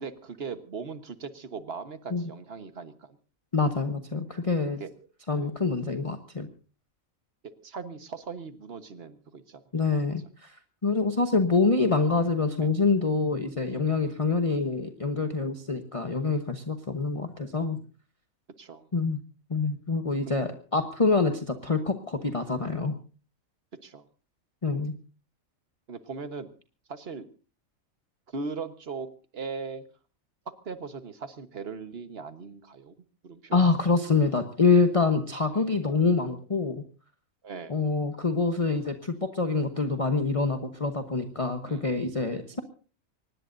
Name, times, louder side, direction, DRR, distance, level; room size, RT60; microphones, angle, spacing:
voice 1, 0.0-3.2 4.8-4.9 5.4-5.5 7.6-9.6 14.0-14.2 18.6-18.9 20.3-20.4 21.0-21.1 23.8-24.0 25.9-26.5 26.9-27.3 28.3-29.8 30.6-32.9 33.2-33.7 35.5-35.6 37.4-37.7 41.6-41.9, right 5 dB, 50° right, 9 dB, 1.5 m, -39 dB
voice 2, 3.5-4.8 5.3-6.5 9.7-17.8 18.9-19.2 19.5-23.0 24.6-25.0 33.5-36.8 37.7-42.6, left 4 dB, 25° left, 6 dB, 1.1 m, -26 dB
24.0 x 19.5 x 2.7 m, 0.38 s
omnidirectional pair, 1.4 m